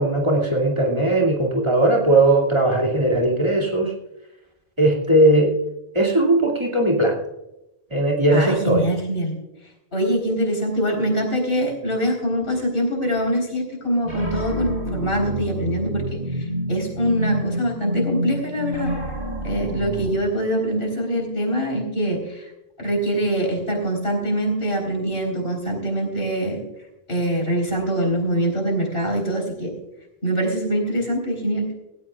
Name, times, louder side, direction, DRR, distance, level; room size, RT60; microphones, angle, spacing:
voice 1, 0.0-3.9 4.8-5.5 5.9-7.2 7.9-8.9, right 1 dB, 25° right, -1 dB, 2.5 m, -18 dB
voice 2, 8.3-9.3 9.9-16.0 16.3-18.9 19.4-22.5 22.8-26.6 27.1-29.7 30.2-31.7, equal, 70° left, 1 dB, 4.4 m, -24 dB
sound 1, 14.0-20.1, equal, 55° right, 5.2 m, -28 dB
17.5 x 17.0 x 2.4 m, 0.92 s
omnidirectional pair, 1.0 m